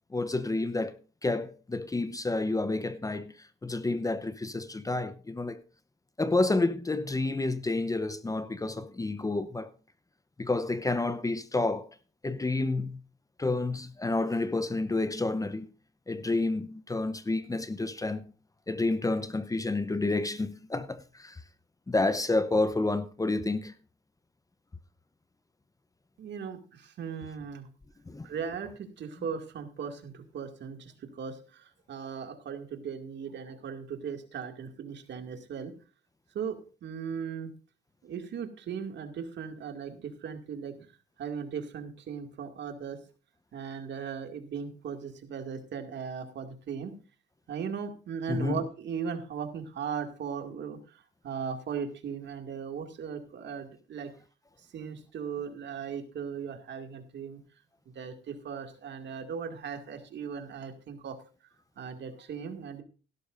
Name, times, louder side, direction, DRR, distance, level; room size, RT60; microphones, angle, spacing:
voice 1, 0.1-1.0 1.2-5.6 6.2-9.7 10.4-11.9 12.2-13.0 13.4-15.7 16.1-18.3 18.7-21.4 21.9-23.7 28.1-28.3 48.3-48.6, left 2 dB, 15° left, 0.8 m, -29 dB
voice 2, 26.2-27.7 28.2-35.7 36.3-37.5 38.0-40.9 41.2-43.0 43.5-46.9 47.5-54.1 54.7-57.4 57.9-61.2 61.8-62.8, right 6 dB, 65° right, 2.3 m, -38 dB
17.0 x 12.0 x 2.6 m
cardioid pair, 90°, 20 cm